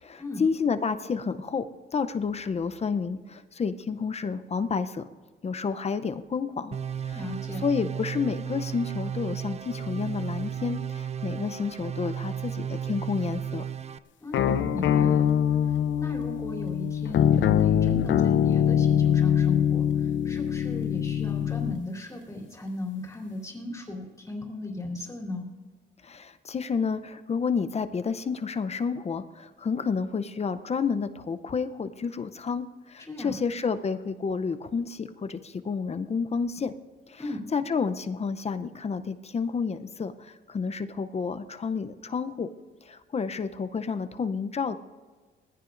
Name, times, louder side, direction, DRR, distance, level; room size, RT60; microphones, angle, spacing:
voice 1, 0.0-1.7 1.9-5.1 5.4-6.8 7.0-7.2 7.6-13.7 26.0-36.7 37.1-37.2 37.5-42.5 42.8-44.8, left 5 dB, 30° left, 11 dB, 0.6 m, -30 dB
sound 1, 6.7-14.0, right 8 dB, 35° right, 0.4 m, -34 dB
voice 2, 7.1-7.6 14.2-15.3 15.6-25.5 33.0-33.4 37.2-37.5, left 2 dB, 15° left, -2 dB, 3.3 m, -37 dB
sound 2, 14.3-21.8, left 9 dB, 70° left, 0.6 m, -23 dB
20.0 x 15.0 x 2.6 m, 1.4 s
cardioid pair, 90°, 20 cm